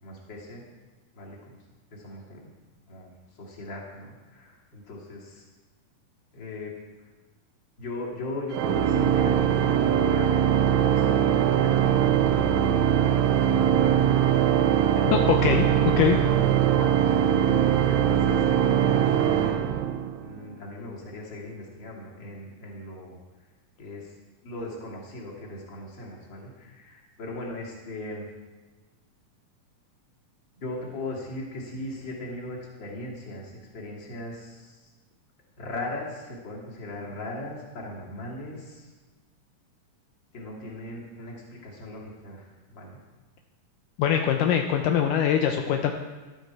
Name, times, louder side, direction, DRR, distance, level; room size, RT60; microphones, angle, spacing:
voice 1, 0.0-0.6 1.1-1.6 1.9-2.5 2.9-3.1 3.4-5.5 6.3-6.7 7.8-10.5 10.9-11.8 12.2-12.9 13.2-13.9 15.9-16.2 16.5-19.5 20.2-23.2 23.8-24.1 24.4-28.3 30.6-34.8 35.6-38.9 40.3-41.3 41.6-43.0, left 2 dB, 35° left, -3 dB, 3.1 m, -38 dB
Organ, 8.5-20.3, right 9 dB, 80° right, 1.6 m, -22 dB
voice 2, 15.1-15.7 16.0-16.2 44.0-45.9, left 8 dB, 80° left, 4 dB, 2.3 m, -22 dB
14.0 x 12.5 x 4.7 m, 1.3 s
omnidirectional pair, 3.9 m